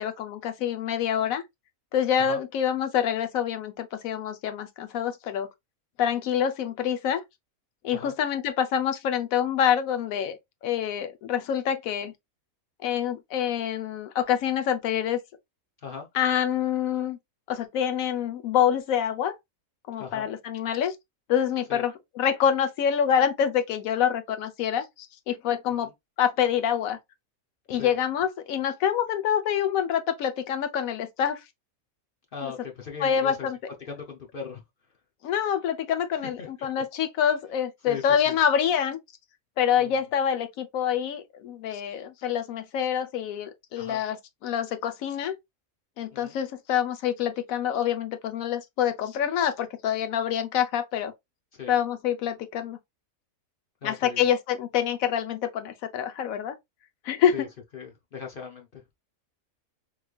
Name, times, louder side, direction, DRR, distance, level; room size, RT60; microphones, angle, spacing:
voice 1, 0.0-1.4 1.9-5.5 6.0-7.2 7.8-10.4 10.6-12.1 12.8-15.2 16.1-17.2 17.5-19.3 19.9-20.9 21.3-24.8 25.3-25.9 26.2-27.0 27.7-31.4 32.4-32.5 33.0-33.6 35.2-39.0 39.6-44.2 44.4-45.3 46.0-51.1 51.7-52.8 53.8-56.6 57.1-57.3, left 9 dB, 75° left, 1.1 m, -26 dB
voice 2, 20.0-20.3 21.7-21.8 25.8-25.9 27.7-27.9 32.3-33.5 33.8-34.6 36.1-36.5 37.9-38.4 39.8-40.0 43.8-44.0 46.2-46.3 51.5-51.7 53.8-54.2 57.3-57.5 57.7-58.8, left 6 dB, 50° left, 0.8 m, -38 dB
3.6 x 3.2 x 2.2 m
omnidirectional pair, 1.5 m